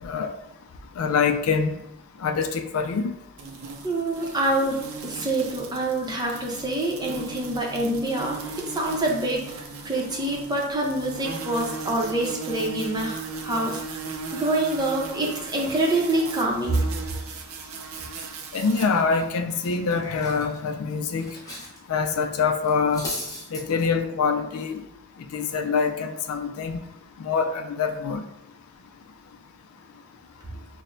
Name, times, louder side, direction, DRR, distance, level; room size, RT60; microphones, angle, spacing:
voice 1, 0.0-0.3 1.0-1.8 2.2-3.1 18.5-21.3 21.9-23.1 23.5-24.8 25.3-26.8 27.2-28.2, left 5 dB, 75° left, 6 dB, 0.4 m, -25 dB
sound 1, 3.4-18.8, right 4 dB, 70° right, 0.5 m, -37 dB
voice 2, 3.8-8.4 8.7-14.0 14.3-16.9, right 1 dB, 20° right, -2 dB, 0.7 m, -26 dB
Cutlery silverware, 18.7-21.8 22.0-22.2 22.6-23.6, left 1 dB, 15° left, 0.9 m, -38 dB
5.9 x 2.1 x 2.6 m, 0.85 s
head